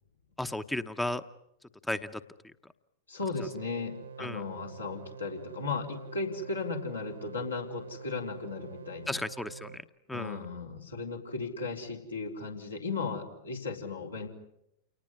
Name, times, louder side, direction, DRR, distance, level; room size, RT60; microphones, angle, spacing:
voice 1, 0.4-1.2 1.9-2.2 4.2-4.4 9.1-9.8 10.1-10.4, left 1 dB, 5° left, 11 dB, 0.9 m, -34 dB
voice 2, 3.1-9.2 10.1-14.3, left 4 dB, 80° left, 0 dB, 4.3 m, -36 dB
sound 1, 3.4-9.8, right 6 dB, 70° right, 1.0 m, -46 dB
29.5 x 19.5 x 9.8 m, 0.82 s
figure-of-eight pair, 90°, 0 cm